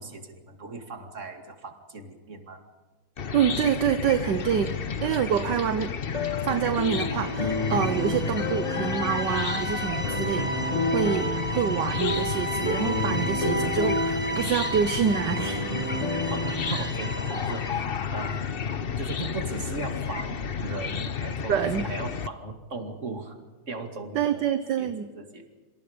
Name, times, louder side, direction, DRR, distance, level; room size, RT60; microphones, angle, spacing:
voice 1, 0.0-2.6 16.3-17.8 18.1-18.5 19.0-23.4 23.7-25.5, right 3 dB, 35° right, 5 dB, 2.6 m, -38 dB
Chicken rooster / Cricket, 3.2-22.3, left 7 dB, 80° left, 0.5 m, -32 dB
voice 2, 3.3-5.9 6.4-10.5 10.9-15.7 16.7-16.8 21.5-21.9 24.1-25.1, right 8 dB, 60° right, 10 dB, 1.5 m, -26 dB
sound 1, 6.1-16.7, left 1 dB, 20° left, 2.2 m, -31 dB
sound 2, 7.0-17.8, right 2 dB, 10° right, 2.6 m, -35 dB
27.5 x 26.5 x 5.2 m, 1.3 s
omnidirectional pair, 2.4 m